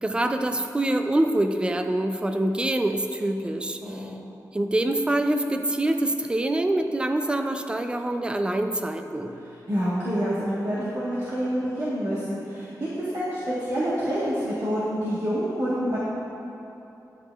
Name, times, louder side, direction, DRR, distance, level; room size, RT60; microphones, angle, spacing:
voice 1, 0.0-4.0 4.5-9.3, right 1 dB, 15° right, 6 dB, 0.3 m, -25 dB
voice 2, 3.8-4.1 9.4-16.0, equal, 45° right, -9 dB, 1.2 m, -27 dB
10.0 x 7.9 x 2.3 m, 2.9 s
wide cardioid pair, 155°, 7 cm